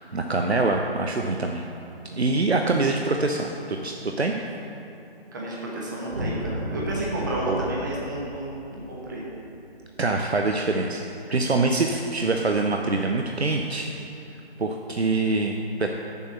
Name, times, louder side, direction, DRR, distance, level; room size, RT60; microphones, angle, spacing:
voice 1, 0.1-1.7 2.2-4.3 7.5-7.7 10.0-11.0 11.3-13.9 14.6-15.9, right 3 dB, 85° right, 3 dB, 0.8 m, -24 dB
voice 2, 5.3-9.3, right 1 dB, 20° right, -4 dB, 1.0 m, -31 dB
sound 1, 6.1-10.5, equal, 65° right, 1.3 m, -34 dB
7.3 x 6.0 x 7.1 m, 2.9 s
figure-of-eight pair, 155°, 31 cm